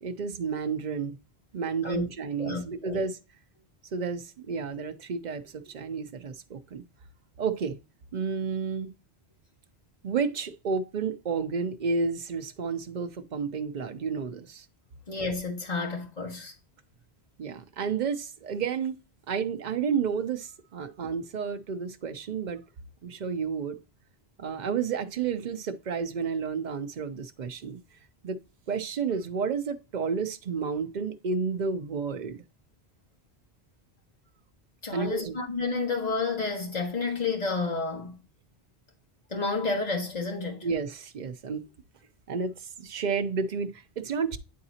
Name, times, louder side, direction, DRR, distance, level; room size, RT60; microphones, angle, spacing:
voice 1, 0.0-1.2 1.5-3.2 3.9-6.8 7.4-7.8 8.1-8.9 10.0-14.7 17.4-19.0 19.3-22.6 23.0-23.8 24.4-27.8 28.2-28.4 28.7-32.4 34.9-35.4 40.6-41.6 42.3-44.4, right 5 dB, 50° right, 0.7 m, -31 dB
voice 2, 2.4-3.0 15.1-16.5 34.8-38.2 39.3-40.7, left 4 dB, 40° left, 1.7 m, -30 dB
9.4 x 3.9 x 2.8 m
omnidirectional pair, 1.1 m